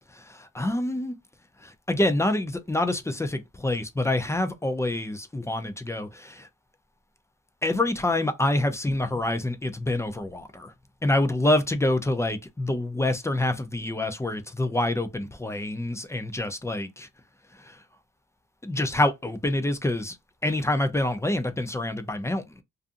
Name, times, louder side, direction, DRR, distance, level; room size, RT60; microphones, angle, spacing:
voice 1, 0.1-1.1 1.6-6.5 7.6-10.7 11.0-17.1 17.5-17.8 18.6-20.2 20.4-22.6, left 1 dB, 10° left, 0.4 m, -26 dB
2.5 x 2.4 x 2.4 m
cardioid pair, 90°, 30 cm